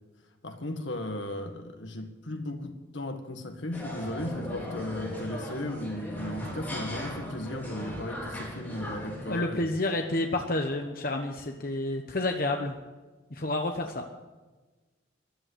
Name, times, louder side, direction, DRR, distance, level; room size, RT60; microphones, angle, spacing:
voice 1, 0.4-9.7, left 1 dB, 75° left, 6 dB, 1.8 m, -36 dB
sound 1, 3.7-9.3, equal, 10° left, 5.0 m, -38 dB
voice 2, 9.3-12.8 13.3-14.0, left 2 dB, 45° left, 4 dB, 1.0 m, -29 dB
14.0 x 11.0 x 8.1 m, 1.3 s
head